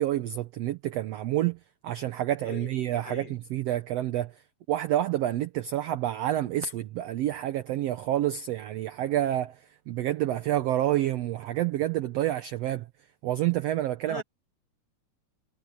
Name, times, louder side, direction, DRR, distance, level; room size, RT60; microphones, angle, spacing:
voice 1, 0.0-1.6 1.8-4.3 4.7-12.9 13.2-14.2, right 13 dB, 75° right, 1.5 m, -28 dB
voice 2, 2.4-3.3 14.1-14.2, left 5 dB, 45° left, 4.5 m, -41 dB
omnidirectional pair, 3.7 m